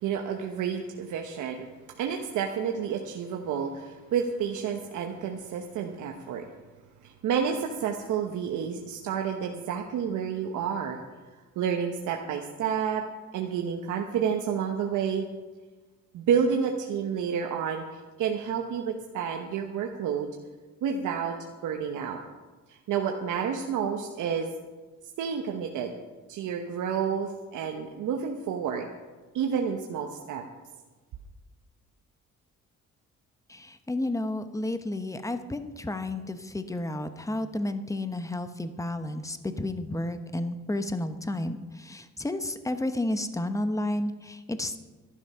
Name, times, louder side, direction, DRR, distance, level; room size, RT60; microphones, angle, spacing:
voice 1, 0.0-1.7 2.0-6.4 7.0-11.0 11.6-13.0 13.3-15.3 16.1-17.8 18.2-20.3 20.8-21.4 21.6-22.2 22.7-24.5 25.2-25.9 26.3-28.9 29.3-30.4, right 7 dB, 80° right, 2 dB, 1.2 m, -30 dB
voice 2, 33.5-44.8, left 1 dB, 10° left, 9 dB, 1.0 m, -31 dB
13.5 x 11.5 x 5.6 m, 1.3 s
cardioid pair, 90°, 30 cm